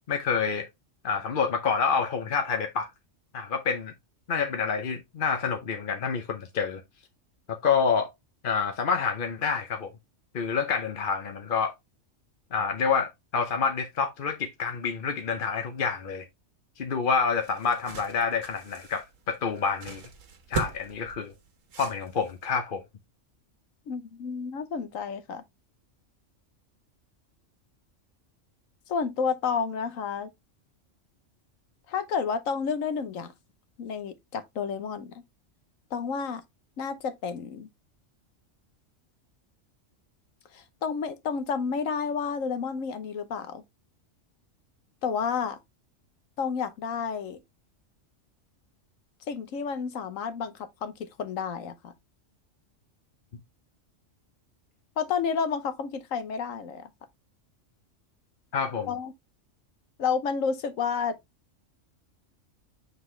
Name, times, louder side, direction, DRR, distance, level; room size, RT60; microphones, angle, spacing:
voice 1, 0.1-0.7 1.0-2.9 3.3-3.9 4.3-6.8 7.5-8.1 8.4-9.9 10.3-11.7 12.5-16.3 16.8-20.0 20.5-21.3 21.8-22.8 58.5-58.9, left 5 dB, 50° left, 0.8 m, -28 dB
sound 1, 17.1-22.5, right 6 dB, 90° right, 1.5 m, -40 dB
voice 2, 23.9-25.4 28.9-30.3 31.9-33.3 33.8-35.1 35.9-36.4 36.8-37.7 40.5-43.6 45.0-45.6 46.4-47.4 49.3-51.9 55.0-56.9 58.9-59.1 60.0-61.2, left 6 dB, 85° left, 1.3 m, -30 dB
7.4 x 4.0 x 3.2 m
omnidirectional pair, 1.3 m